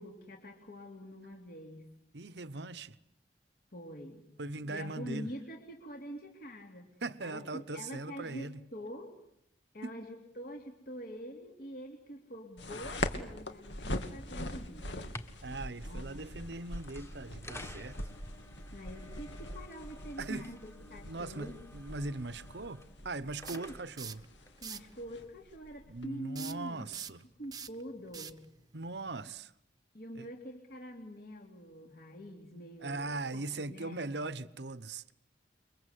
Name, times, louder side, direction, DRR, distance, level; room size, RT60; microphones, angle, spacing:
voice 1, 0.0-1.9 3.7-4.3 4.6-6.9 7.2-8.5 8.7-9.1 9.7-15.1 15.8-16.1 18.7-21.6 23.5-23.7 24.6-26.9 27.4-28.4 29.9-34.4, equal, 55° left, 3.2 m, -45 dB
voice 2, 2.1-3.0 4.4-5.3 7.0-8.6 9.8-9.9 15.4-18.0 20.2-20.5 21.0-24.2 25.9-27.2 28.7-29.5 30.2-30.3 32.8-35.1, right 2 dB, 70° right, 1.0 m, -40 dB
sound 1, 12.6-26.1, left 1 dB, 85° left, 2.8 m, -42 dB
sound 2, 14.9-25.3, left 2 dB, 15° left, 1.7 m, -53 dB
sound 3, 23.4-24.2 24.6-24.9 26.3-29.4, right 7 dB, 20° right, 1.0 m, -45 dB
29.5 x 23.5 x 8.3 m
head